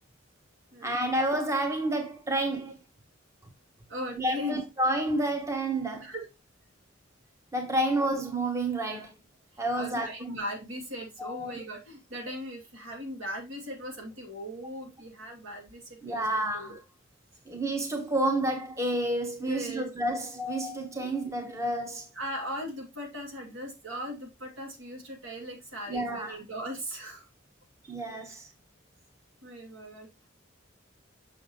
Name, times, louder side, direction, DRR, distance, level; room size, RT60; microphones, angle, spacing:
voice 1, 0.8-2.8 4.2-6.1 7.5-9.1 9.6-10.4 11.2-11.5 16.0-16.8 17.5-22.1 25.9-26.4 27.9-28.5, right 1 dB, 15° right, 0.8 m, -29 dB
voice 2, 3.9-4.6 6.0-6.2 8.8-9.1 9.5-16.2 16.5-16.8 19.4-19.9 21.0-21.1 22.1-27.2 27.8-28.3 29.4-30.1, equal, 80° right, 2.4 m, -39 dB
6.5 x 6.3 x 2.9 m
head